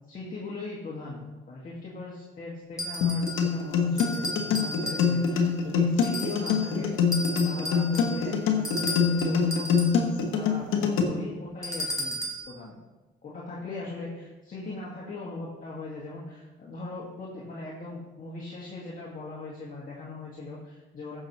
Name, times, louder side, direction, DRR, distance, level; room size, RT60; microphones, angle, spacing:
voice 1, 0.1-6.9 7.4-9.7 10.3-12.2 12.5-12.8 13.2-21.2, left 3 dB, 45° left, -5 dB, 2.1 m, -39 dB
sound 1, 2.8-3.5 4.0-5.4 6.0-6.7 7.1-10.1 11.6-12.5, left 1 dB, 15° left, 2.5 m, -34 dB
sound 2, 3.0-11.0, left 6 dB, 90° left, 1.3 m, -24 dB
14.5 x 6.4 x 3.2 m, 1.2 s
cardioid pair, 90°, 20 cm